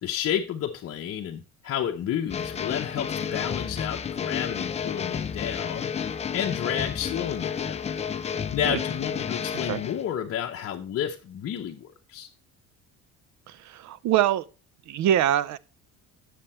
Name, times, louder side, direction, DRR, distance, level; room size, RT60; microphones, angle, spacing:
voice 1, 0.0-5.9 6.3-7.7 8.5-12.3, left 9 dB, 45° left, 0.8 m, -31 dB
sound 1, 2.3-10.0, left 7 dB, 20° left, 0.4 m, -31 dB
voice 2, 13.5-14.4 14.9-15.6, right 11 dB, 55° right, 0.5 m, -24 dB
9.7 x 6.7 x 4.2 m
cardioid pair, 145°, 34 cm